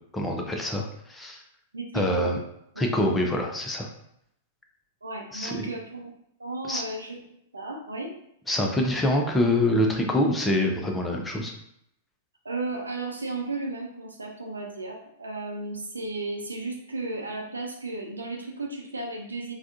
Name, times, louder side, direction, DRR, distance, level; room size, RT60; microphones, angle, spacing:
voice 1, 0.1-0.8 1.1-1.4 1.9-2.4 2.8-3.9 5.3-5.7 6.7-6.8 8.5-11.5, left 1 dB, 10° left, 1 dB, 0.5 m, -25 dB
voice 2, 1.7-2.3 2.7-2.9 5.0-6.1 6.4-7.2 7.5-8.1 12.4-19.5, right 2 dB, 80° right, 1 dB, 0.6 m, -34 dB
3.4 x 2.3 x 2.6 m, 0.75 s
figure-of-eight pair, 100°, 0 cm